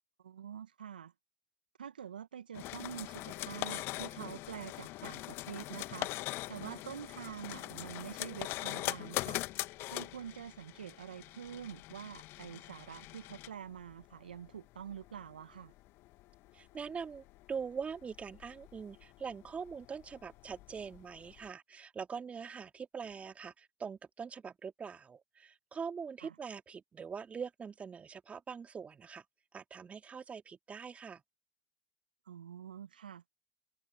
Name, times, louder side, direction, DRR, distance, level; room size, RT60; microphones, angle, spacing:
voice 1, 0.2-1.1 1.8-9.4 9.9-15.7 26.2-26.4 32.3-33.3, right 8 dB, 80° right, 1.5 m, -46 dB
sound 1, 2.5-21.5, left 18 dB, 55° left, 1.4 m, -43 dB
voice 2, 16.5-29.2 29.5-31.2, right 6 dB, 25° right, 2.8 m, -43 dB
figure-of-eight pair, 70°, 5 cm